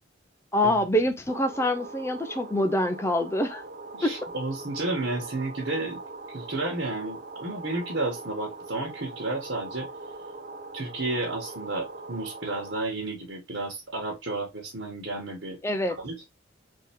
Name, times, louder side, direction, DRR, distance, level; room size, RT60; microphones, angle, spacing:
voice 1, 0.5-3.6 4.0-4.1 15.6-16.0, left 1 dB, 15° left, 0.4 m, -25 dB
sound 1, 1.3-12.7, right 3 dB, 45° right, 0.6 m, -41 dB
voice 2, 3.9-6.0 6.3-9.9 10.7-15.6 16.0-16.2, right 2 dB, 60° right, 1.4 m, -32 dB
3.7 x 2.8 x 3.4 m
head